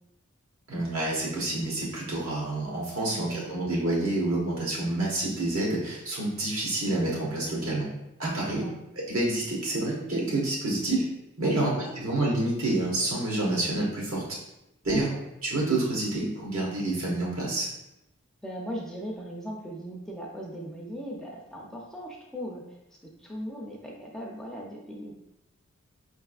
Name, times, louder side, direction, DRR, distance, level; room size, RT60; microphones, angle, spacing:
voice 1, 0.7-7.9 8.2-8.6 9.1-11.1 11.4-14.2 14.8-15.1 15.4-17.7, right 2 dB, 80° right, -4 dB, 1.3 m, -28 dB
voice 2, 3.0-3.6 8.6-8.8 11.4-11.9 14.9-15.2 18.4-22.6 23.2-25.1, equal, 5° left, -2 dB, 0.4 m, -38 dB
5.2 x 3.4 x 2.3 m, 0.88 s
head